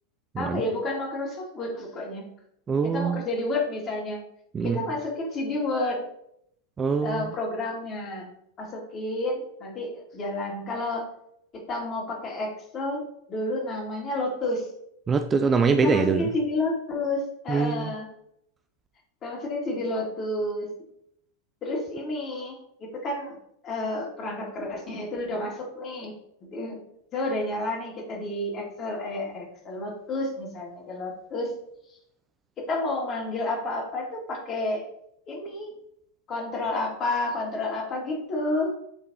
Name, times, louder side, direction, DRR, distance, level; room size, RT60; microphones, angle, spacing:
voice 1, 0.4-2.3 2.9-4.2 4.6-6.0 7.0-8.3 8.6-11.1 11.5-13.0 13.3-14.7 15.8-18.1 19.2-20.7 21.6-23.4 23.6-26.1 26.4-26.8 27.1-31.5 32.7-34.9 35.3-35.7 36.3-38.7, left 2 dB, 30° left, -1 dB, 2.2 m, -30 dB
voice 2, 2.7-3.2 4.5-4.8 6.8-7.3 15.1-16.3 17.5-17.9, right 5 dB, 20° right, 8 dB, 0.4 m, -24 dB
10.5 x 3.9 x 2.8 m, 0.73 s
figure-of-eight pair, 90°, 0 cm